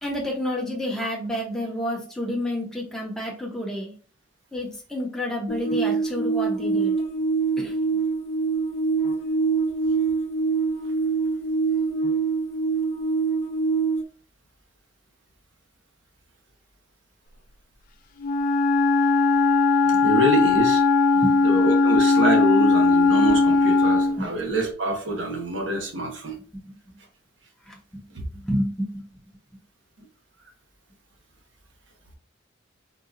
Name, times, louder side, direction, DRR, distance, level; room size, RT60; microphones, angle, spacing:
voice 1, 0.0-3.9 4.5-7.0 7.6-7.7 19.9-20.1 21.1-21.3 24.2-24.3 27.7-28.0 28.3-29.1, equal, 5° left, 0.8 m, -29 dB
sound 1, 5.5-14.0, right 4 dB, 85° left, 0.6 m, -24 dB
Wind instrument woodwind instrument, 18.2-24.2, left 3 dB, 50° left, 0.3 m, -19 dB
voice 2, 20.0-20.8 21.4-26.4 28.1-28.2, right 1 dB, 80° right, 0.9 m, -25 dB
3.7 x 2.3 x 2.6 m
head